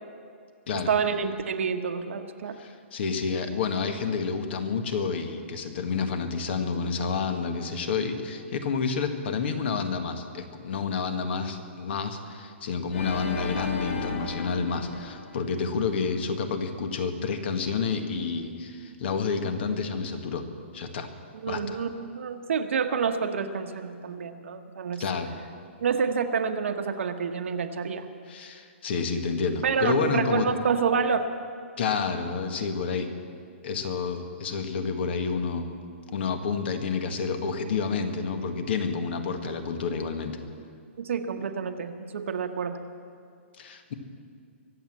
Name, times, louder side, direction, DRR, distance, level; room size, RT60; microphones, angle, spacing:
voice 1, 0.7-2.6 21.4-25.0 25.8-28.0 29.6-31.3 41.0-42.8, right 6 dB, 70° right, 7 dB, 1.2 m, -28 dB
voice 2, 2.5-20.4 20.7-21.1 21.5-21.8 25.0-25.3 28.3-30.5 31.8-33.1 33.6-35.7 36.1-40.4 43.6-43.9, left 5 dB, 55° left, 7 dB, 1.7 m, -29 dB
Organ, 12.9-16.0, left 3 dB, 70° left, 2.7 m, -34 dB
23.5 x 8.1 x 7.5 m, 2.3 s
hypercardioid pair, 160°, 7 cm